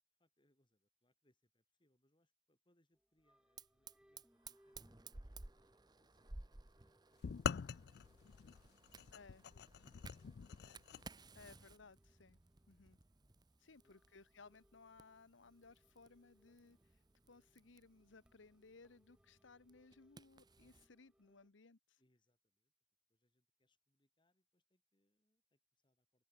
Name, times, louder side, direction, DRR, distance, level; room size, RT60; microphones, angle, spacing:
voice 1, 0.0-10.8 13.7-14.0 17.2-17.7 22.0-22.7 23.1-26.3, left 1 dB, 25° left, 7.1 m, -82 dB
sound 1, 2.9-21.5, equal, 5° right, 7.1 m, -77 dB
Fire, 3.6-20.9, right 3 dB, 20° right, 0.9 m, -59 dB
sound 2, 7.2-11.0, left 6 dB, 60° left, 0.4 m, -44 dB
voice 2, 9.1-9.4 11.3-12.4 12.7-13.0 13.6-22.0, left 4 dB, 80° left, 1.0 m, -62 dB
open air
head